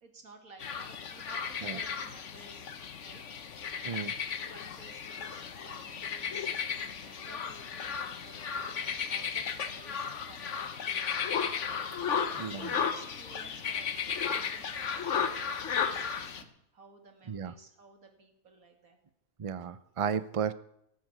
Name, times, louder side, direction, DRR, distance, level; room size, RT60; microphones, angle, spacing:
voice 1, 0.0-3.2 4.5-11.8 12.6-19.0, right 3 dB, 80° right, 5 dB, 2.7 m, -56 dB
sound 1, 0.6-16.4, left 7 dB, 60° left, 1.3 m, -34 dB
voice 2, 3.8-4.1 12.4-12.8 17.3-17.5 19.4-20.5, right 7 dB, 45° right, 15 dB, 0.4 m, -34 dB
17.0 x 9.2 x 8.0 m, 0.79 s
omnidirectional pair, 1.5 m